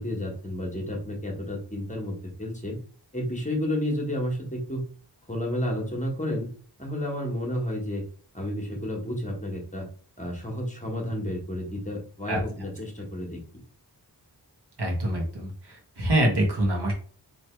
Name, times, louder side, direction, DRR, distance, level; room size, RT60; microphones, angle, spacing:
voice 1, 0.0-2.8 3.1-4.8 5.3-6.5 6.8-8.0 8.3-9.9 10.2-13.4, left 1 dB, 20° left, 0 dB, 1.2 m, -31 dB
voice 2, 14.8-16.9, right 1 dB, 70° right, 0 dB, 1.3 m, -25 dB
3.1 x 3.0 x 4.5 m, 0.43 s
wide cardioid pair, 70°, 41 cm